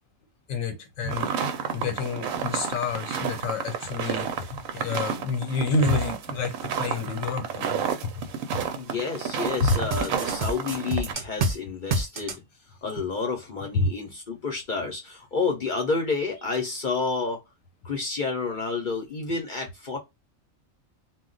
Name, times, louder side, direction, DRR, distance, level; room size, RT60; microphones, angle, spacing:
voice 1, 0.5-1.3 1.7-8.2 8.5-8.6, left 4 dB, 80° left, 1.1 m, -29 dB
sound 1, 1.1-11.1, right 7 dB, 90° right, 1.0 m, -31 dB
voice 2, 8.8-12.4 12.8-17.4 17.8-20.0, left 4 dB, 50° left, 0.7 m, -29 dB
sound 2, 9.7-11.6 11.9-12.4, right 2 dB, 55° right, 0.5 m, -27 dB
2.3 x 2.2 x 3.8 m
omnidirectional pair, 1.4 m